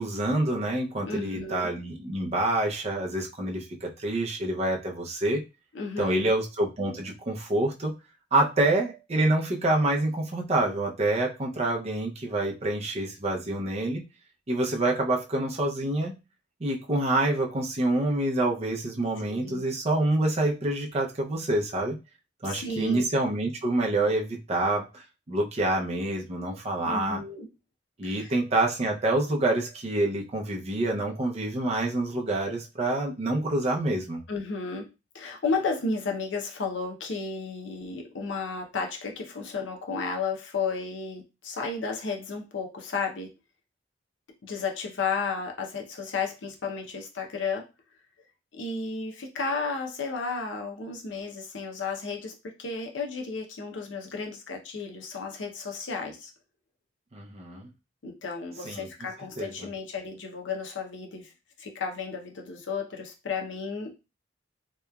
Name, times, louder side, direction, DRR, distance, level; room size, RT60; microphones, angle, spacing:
voice 1, 0.0-5.5 6.0-7.9 8.3-14.0 14.5-16.2 16.6-22.0 22.4-27.2 28.0-34.2 57.1-57.7 58.7-58.9 59.4-59.7, right 2 dB, 35° right, 0 dB, 0.5 m, -27 dB
voice 2, 1.1-1.7 5.7-6.3 19.3-19.7 22.4-23.0 26.8-27.5 28.0-28.3 34.3-34.9 35.1-43.3 44.4-47.7 48.5-56.3 58.0-61.3 61.6-64.0, left 4 dB, 75° left, 2 dB, 0.6 m, -33 dB
2.9 x 2.3 x 2.3 m, 0.28 s
head